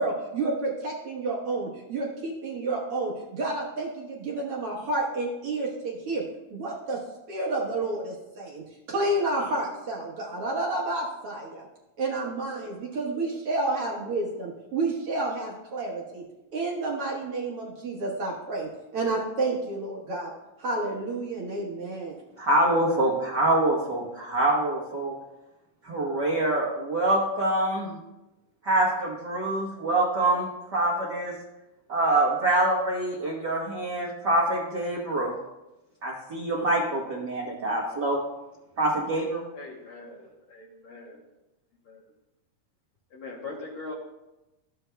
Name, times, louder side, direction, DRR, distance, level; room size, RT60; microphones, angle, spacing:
voice 1, 0.0-6.2 6.5-7.0 7.3-11.7 12.0-16.2 16.5-20.3 20.6-22.1, right 2 dB, 55° right, -3 dB, 1.7 m, -30 dB
voice 2, 22.4-25.1 25.8-28.0 28.6-31.3 31.9-35.3 36.0-38.2 38.8-39.4, right 1 dB, 90° right, -4 dB, 0.9 m, -25 dB
voice 3, 39.5-41.2 41.9-42.0 43.1-43.9, left 3 dB, 70° left, -3 dB, 1.2 m, -41 dB
12.5 x 7.8 x 2.2 m, 0.98 s
omnidirectional pair, 3.8 m